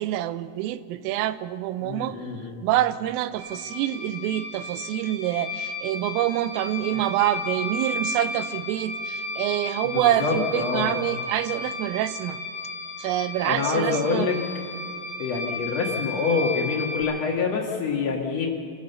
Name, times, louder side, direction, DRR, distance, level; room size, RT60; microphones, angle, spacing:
voice 1, 0.0-2.2 2.6-12.4 13.0-14.4, right 13 dB, 85° right, 14 dB, 3.3 m, -26 dB
voice 2, 1.8-2.6 9.8-10.9 13.4-14.4 15.2-18.5, left 5 dB, 60° left, 0 dB, 1.7 m, -26 dB
sound 1, 3.3-17.0, left 2 dB, 20° right, 6.7 m, -34 dB
25.0 x 15.0 x 6.9 m, 2.2 s
omnidirectional pair, 5.8 m